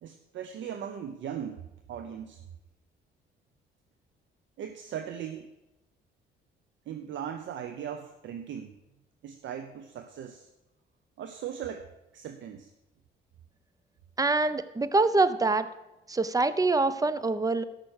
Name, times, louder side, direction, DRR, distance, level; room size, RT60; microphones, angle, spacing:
voice 1, 0.0-2.4 4.6-5.5 6.9-8.7 9.2-10.5 11.2-11.9 12.1-12.7, right 9 dB, 70° right, 7 dB, 0.8 m, -38 dB
voice 2, 14.2-15.7 16.1-17.6, right 3 dB, 20° right, 14 dB, 0.7 m, -25 dB
13.0 x 6.0 x 6.4 m, 0.95 s
cardioid pair, 90°, 20 cm